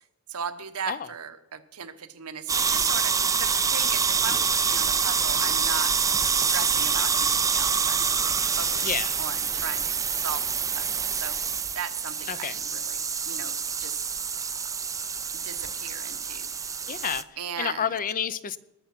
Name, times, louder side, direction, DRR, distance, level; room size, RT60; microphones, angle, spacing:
voice 1, 0.3-6.0 6.3-8.9 9.2-9.8 10.1-11.4 11.7-14.1 15.3-16.5 17.4-17.9, right 7 dB, 75° right, 10 dB, 1.0 m, -37 dB
sound 1, 2.5-17.2, right 6 dB, 15° right, 0.4 m, -26 dB
voice 2, 8.8-9.1 12.3-12.6 16.9-17.3 17.6-18.6, left 7 dB, 40° left, 16 dB, 0.5 m, -29 dB
20.0 x 6.9 x 5.9 m, 0.95 s
head